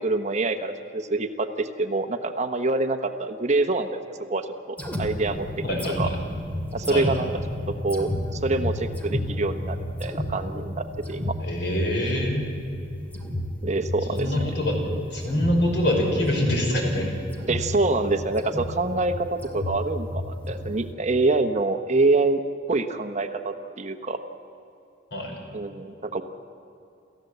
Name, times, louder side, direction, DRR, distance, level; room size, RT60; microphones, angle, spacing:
voice 1, 0.0-4.0 4.3-5.5 6.0-6.1 6.7-7.3 7.8-11.3 13.6-14.3 17.5-22.4 22.7-24.2 25.5-26.2, right 3 dB, 40° right, 8 dB, 1.0 m, -26 dB
sound 1, 4.8-20.9, left 1 dB, 10° left, 2.5 m, -32 dB
voice 2, 5.6-6.0 6.9-7.1 11.4-12.5 14.1-14.9 15.1-17.2 25.1-25.4, left 1 dB, 65° left, 1 dB, 5.5 m, -25 dB
28.5 x 14.5 x 8.0 m, 2.6 s
head